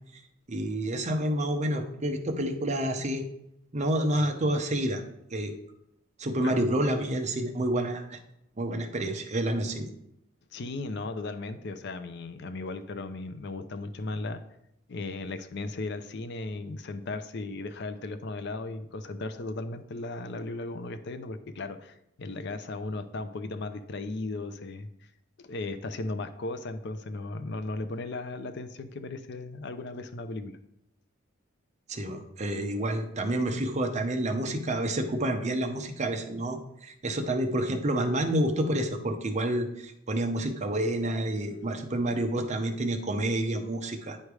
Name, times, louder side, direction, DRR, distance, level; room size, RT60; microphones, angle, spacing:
voice 1, 0.5-3.2 3.7-5.0 5.3-5.5 6.2-8.2 8.6-9.9 31.9-44.2, right 1 dB, 35° right, 5 dB, 0.7 m, -29 dB
voice 2, 10.5-14.4 14.9-24.9 25.4-30.6, left 2 dB, 55° left, 10 dB, 0.5 m, -36 dB
9.4 x 3.2 x 4.8 m, 0.78 s
head